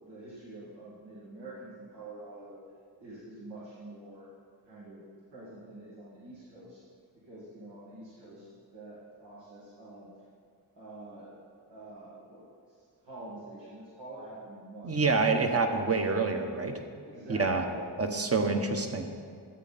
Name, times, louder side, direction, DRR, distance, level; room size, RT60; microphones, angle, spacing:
voice 1, 0.0-2.6 3.0-4.3 4.7-6.8 7.3-8.4 8.7-10.1 10.7-11.3 11.7-12.8 13.0-15.4 17.0-18.4, right 2 dB, 85° right, -9 dB, 2.4 m, -47 dB
voice 2, 14.8-16.8 17.3-17.6 18.0-19.1, right 4 dB, 35° right, 5 dB, 1.1 m, -27 dB
12.5 x 8.6 x 4.2 m, 2.1 s
cardioid pair, 90°, 42 cm